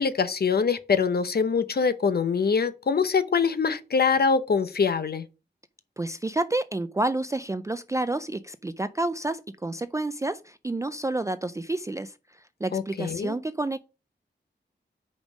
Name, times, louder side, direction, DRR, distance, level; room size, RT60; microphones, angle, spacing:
voice 1, 0.0-5.2 12.7-13.3, left 5 dB, 60° left, 0.6 m, -24 dB
voice 2, 6.0-12.1 12.6-13.8, right 2 dB, 15° right, 0.3 m, -29 dB
5.3 x 5.1 x 6.2 m
wide cardioid pair, 120°, 19 cm